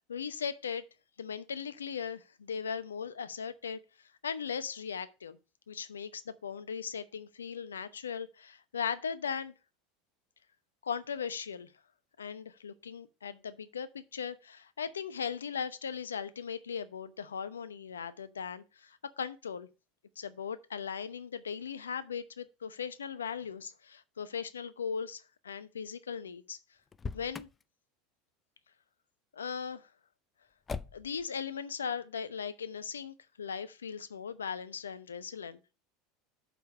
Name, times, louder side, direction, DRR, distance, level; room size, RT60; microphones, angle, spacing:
voice 1, 0.1-0.8 1.2-3.8 4.2-5.4 5.7-9.5 10.8-11.7 12.2-19.7 20.2-26.6 27.1-27.5 29.3-29.9 30.9-35.7, left 6 dB, 85° left, 0.8 m, -38 dB
Motor vehicle (road), 26.9-27.6 30.7-31.2, left 5 dB, 25° left, 0.5 m, -40 dB
6.8 x 5.0 x 6.3 m
hypercardioid pair, 80°, 0 cm